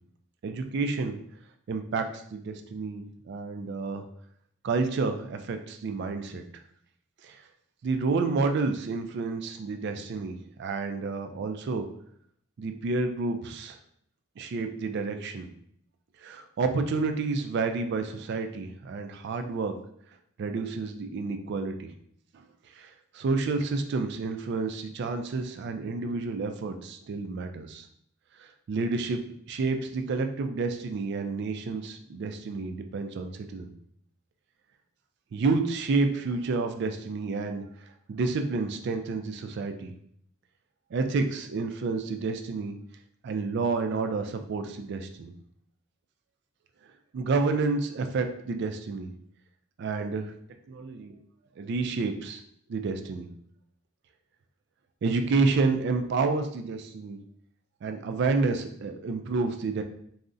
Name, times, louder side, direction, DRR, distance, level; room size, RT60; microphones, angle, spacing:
voice 1, 0.4-1.2 1.7-4.0 4.6-6.4 7.2-7.4 7.8-11.9 12.6-13.8 14.4-15.5 16.2-19.8 20.4-21.9 22.3-22.4 22.7-27.9 28.4-29.2 29.5-33.7 35.3-37.7 38.1-39.9 40.9-42.8 43.2-45.3 47.1-49.1 49.8-50.3 50.7-51.2 51.6-52.4 52.7-53.3 55.0-57.2 57.8-59.8, right 4 dB, 60° right, 6 dB, 0.3 m, -29 dB
3.6 x 2.0 x 2.5 m, 0.67 s
head